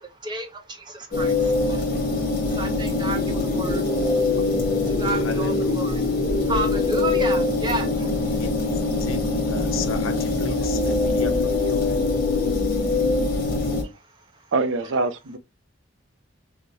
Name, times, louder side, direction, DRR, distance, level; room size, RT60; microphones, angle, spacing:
voice 1, 0.0-9.1 9.6-9.8 10.6-11.2 12.3-14.5, right 2 dB, 20° right, 0.6 m, -35 dB
sound 1, 1.1-13.8, left 3 dB, 45° left, 1.1 m, -23 dB
sound 2, 2.8-13.3, left 1 dB, 25° left, 0.4 m, -32 dB
voice 2, 5.2-5.9 8.3-8.6 8.9-12.0, left 4 dB, 85° left, 0.6 m, -34 dB
voice 3, 14.5-15.4, right 3 dB, 75° right, 0.5 m, -24 dB
4.6 x 2.1 x 2.6 m
head